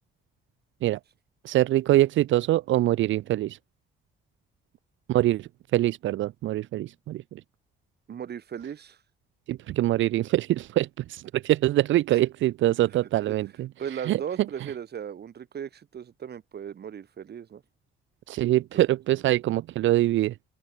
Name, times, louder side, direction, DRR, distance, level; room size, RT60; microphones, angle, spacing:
voice 1, 1.4-3.6 5.1-7.4 9.5-13.7 14.1-14.2 18.3-20.4, right 15 dB, 75° right, 0.6 m, -24 dB
voice 2, 8.1-9.0 12.1-12.2 13.2-13.4 13.8-17.6 18.5-18.9, right 8 dB, 55° right, 4.2 m, -37 dB
open air
cardioid pair, 90°, 20 cm